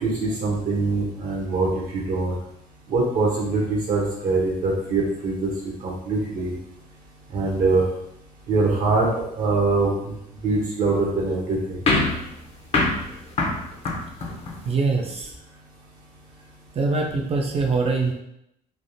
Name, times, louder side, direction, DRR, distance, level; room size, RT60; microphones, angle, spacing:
voice 1, 0.0-2.3 2.9-5.5 5.8-6.5 7.3-7.8 8.5-9.1 9.4-10.1 10.4-11.8, right 3 dB, 55° right, -3 dB, 0.8 m, -23 dB
sound 1, 11.9-14.7, left 2 dB, 35° left, 0.6 m, -25 dB
voice 2, 14.6-15.3 16.7-18.1, right 3 dB, 35° right, 1 dB, 0.5 m, -23 dB
3.3 x 2.4 x 2.6 m, 0.78 s
cardioid pair, 110°, 17 cm